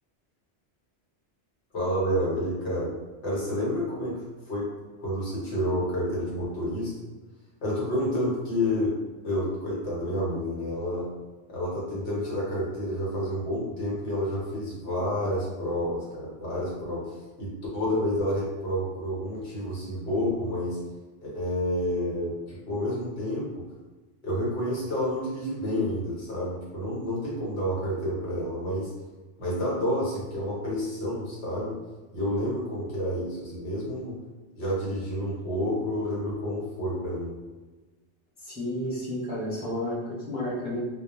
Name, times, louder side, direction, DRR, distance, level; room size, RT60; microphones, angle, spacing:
voice 1, 1.7-2.9 3.2-4.7 5.0-7.0 7.6-9.0 9.2-11.1 11.5-20.8 21.2-23.6 24.2-28.9 29.4-31.8 32.1-34.2 34.6-37.3, equal, 70° left, -6 dB, 1.1 m, -29 dB
voice 2, 38.4-40.8, left 1 dB, 10° right, -8 dB, 0.4 m, -31 dB
2.2 x 2.2 x 2.9 m, 1.2 s
omnidirectional pair, 1.2 m